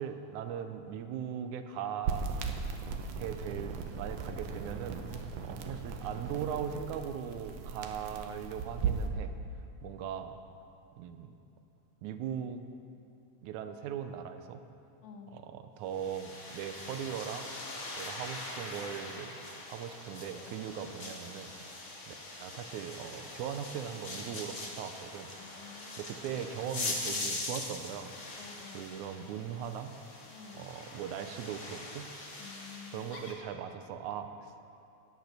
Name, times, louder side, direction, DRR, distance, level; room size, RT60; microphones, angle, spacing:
voice 1, 0.0-2.4 3.2-9.3 9.8-10.4 11.0-11.4 12.0-12.6 13.4-14.6 15.3-17.5 18.0-19.4 19.7-22.1 22.4-25.3 25.6-25.7 26.0-28.1 28.7-30.0 30.5-32.1 32.9-34.7, right 8 dB, 90° right, 8 dB, 2.1 m, -39 dB
sound 1, 2.1-9.1, right 5 dB, 70° right, 1.7 m, -37 dB
voice 2, 5.1-5.6 15.0-15.4 25.4-26.2 28.4-29.0 30.3-30.7 32.4-33.2, left 7 dB, 75° left, 4 dB, 2.0 m, -51 dB
sound 2, 15.9-33.3, left 2 dB, 45° left, 0.9 m, -42 dB
10.5 x 9.2 x 6.6 m, 2.7 s
omnidirectional pair, 3.4 m